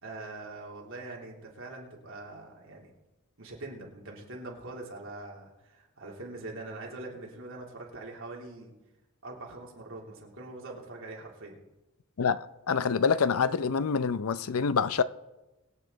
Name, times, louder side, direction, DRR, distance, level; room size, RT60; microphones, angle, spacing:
voice 1, 0.0-2.9 3.4-8.7 9.2-11.6, right 2 dB, 65° right, 3.2 m, -43 dB
voice 2, 12.2-15.0, left 5 dB, 70° left, 0.5 m, -26 dB
23.0 x 8.9 x 4.0 m
head